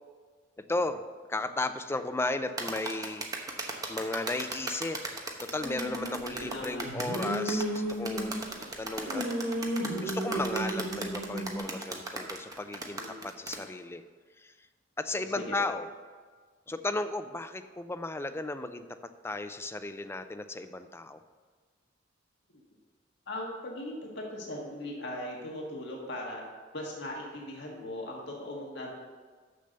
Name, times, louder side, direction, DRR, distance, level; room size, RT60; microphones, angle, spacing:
voice 1, 0.7-1.0 1.3-3.5 3.9-8.3 8.7-9.2 10.0-14.0 14.4-14.5 15.0-15.8 16.7-18.9 19.2-21.2, left 2 dB, 15° left, 10 dB, 0.4 m, -35 dB
sound 1, 2.6-13.6, right 2 dB, 20° right, 0.9 m, -37 dB
sound 2, 5.6-6.2 6.8-8.7 9.1-11.6, right 1 dB, 80° right, 2.4 m, -33 dB
voice 2, 6.2-7.0 12.9-13.2 15.1-15.6 22.5-22.6 23.3-26.4 26.7-28.9, left 1 dB, 65° left, -2 dB, 1.7 m, -39 dB
6.7 x 6.6 x 6.6 m, 1.5 s
head